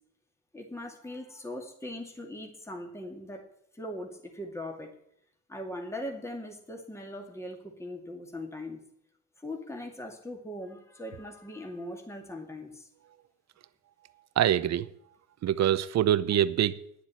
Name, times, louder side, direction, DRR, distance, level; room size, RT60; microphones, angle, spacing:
voice 1, 0.5-3.4 3.7-4.9 5.5-8.8 9.4-12.9, left 1 dB, 10° left, 3 dB, 2.3 m, -40 dB
voice 2, 14.4-14.9 15.4-17.1, right 11 dB, 60° right, 15 dB, 0.8 m, -25 dB
10.0 x 7.5 x 8.5 m, 0.72 s
cardioid pair, 90°, 30 cm